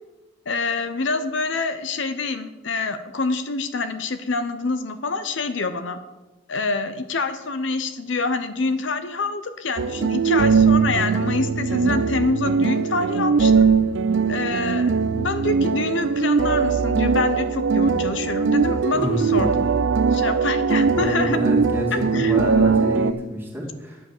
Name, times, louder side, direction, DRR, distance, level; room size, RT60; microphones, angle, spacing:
voice 1, 0.5-6.0 6.5-13.6 14.3-19.5 20.1-21.4 21.9-22.4, left 3 dB, 70° left, 10 dB, 0.7 m, -26 dB
sound 1, 9.8-23.1, right 5 dB, 70° right, 0.5 m, -20 dB
voice 2, 18.9-19.6 20.9-24.0, equal, 10° right, -2 dB, 2.3 m, -27 dB
9.8 x 7.7 x 6.6 m, 1.1 s
head